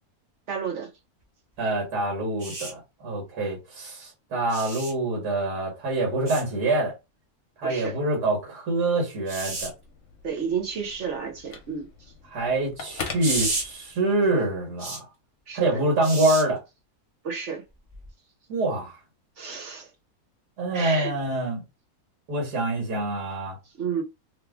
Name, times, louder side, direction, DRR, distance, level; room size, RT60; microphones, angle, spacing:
voice 1, 0.5-0.9 7.6-8.0 10.2-11.9 15.5-15.8 17.2-17.6 19.4-19.9 20.7-21.1 23.8-24.0, right 6 dB, 55° right, 0.9 m, -31 dB
voice 2, 1.6-6.9 7.6-9.7 12.3-15.1 15.5-16.6 18.5-19.0 20.6-21.6 22.3-23.6, right 2 dB, 85° right, 1.8 m, -26 dB
sound 1, 2.4-2.7 4.5-4.9 6.3-6.4 9.3-9.7 13.2-13.6 14.8-15.0 16.0-16.4 17.9-18.1, right 2 dB, 30° right, 1.0 m, -31 dB
Telephone, 9.4-14.2, left 5 dB, 55° left, 1.1 m, -41 dB
3.5 x 2.3 x 3.5 m
omnidirectional pair, 1.6 m